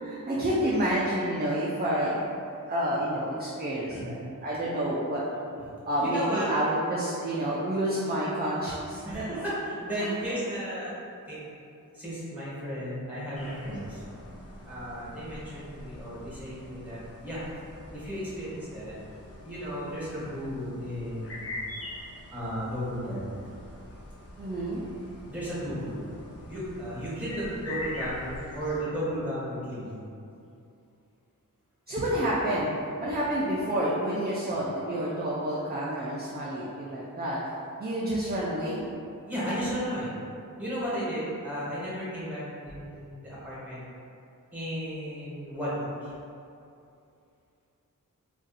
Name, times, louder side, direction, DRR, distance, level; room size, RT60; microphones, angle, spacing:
voice 1, 0.0-2.2 2.7-5.2 5.8-9.2 10.0-10.1 24.4-24.8 31.9-32.7 33.0-37.4 37.8-38.8, right 1 dB, 30° right, -7 dB, 0.4 m, -29 dB
voice 2, 6.0-6.5 9.0-10.9 11.3-11.4 11.9-14.0 14.7-17.4 17.9-18.9 19.4-21.5 22.3-23.5 25.3-26.1 26.5-30.0 39.3-40.1 40.6-43.8 44.5-46.1, equal, 5° right, -10 dB, 1.4 m, -34 dB
sound 1, 13.3-28.8, left 1 dB, 45° left, 0.6 m, -43 dB
2.6 x 2.4 x 4.0 m, 2.6 s
wide cardioid pair, 85°, 33 cm